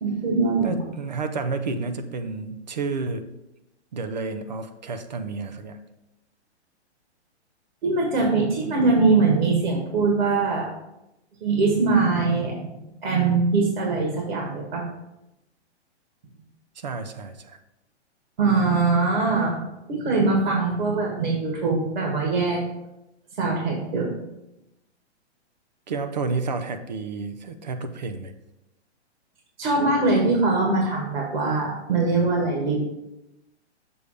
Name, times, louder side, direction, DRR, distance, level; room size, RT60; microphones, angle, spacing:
voice 1, 0.0-0.8 7.8-10.7 11.4-14.8 18.4-19.6 19.9-22.6 23.4-24.2 29.6-32.8, right 3 dB, 55° right, -1 dB, 1.6 m, -22 dB
voice 2, 0.6-3.3 3.9-5.8 16.8-17.6 25.9-28.3, right 4 dB, 40° right, 9 dB, 0.5 m, -30 dB
6.9 x 3.3 x 5.0 m, 0.91 s
hypercardioid pair, 175°, 34 cm